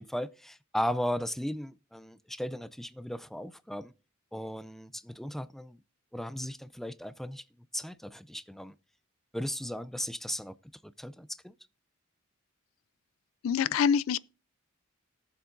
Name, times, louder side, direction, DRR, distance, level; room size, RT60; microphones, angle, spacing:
voice 1, 0.0-3.9 4.3-5.8 6.1-7.4 7.7-8.7 9.3-10.6 10.8-11.5, equal, ahead, 0.4 m, -36 dB
voice 2, 13.4-14.2, left 7 dB, 75° left, 0.4 m, -25 dB
19.0 x 7.0 x 2.5 m
head